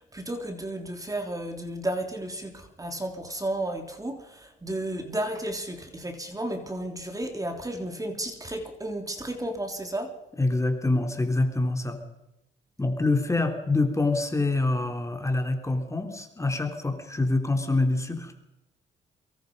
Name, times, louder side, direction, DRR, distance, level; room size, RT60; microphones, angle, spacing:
voice 1, 0.0-10.2, right 1 dB, 15° right, 5 dB, 3.2 m, -33 dB
voice 2, 10.4-12.0 12.8-18.4, left 2 dB, 15° left, 5 dB, 3.3 m, -26 dB
24.5 x 22.5 x 5.4 m, 0.93 s
cardioid pair, 90°, 20 cm